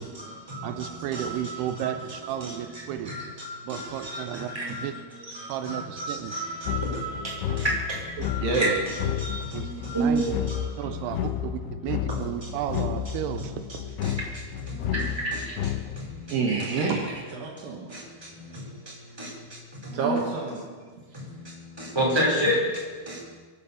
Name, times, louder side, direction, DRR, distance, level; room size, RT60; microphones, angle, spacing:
voice 1, 0.0-11.3 11.7-11.8 12.1-12.5 13.4-17.0 17.9-20.1 20.7-20.8 21.1-23.2, right 1 dB, 5° right, -4 dB, 4.3 m, -32 dB
voice 2, 0.6-3.2 3.7-4.5 4.8-4.9 5.5-6.4 8.2-8.6 9.5-9.7 10.0-10.3 10.8-14.0, right 11 dB, 85° right, 10 dB, 2.7 m, -33 dB
sound 1, 6.7-16.1, left 10 dB, 85° left, 2.9 m, -32 dB
voice 3, 8.4-8.8 14.8-14.9 16.3-17.9 19.9-20.7, right 4 dB, 65° right, 1 dB, 3.0 m, -28 dB
23.5 x 8.6 x 7.0 m, 1.5 s
omnidirectional pair, 4.6 m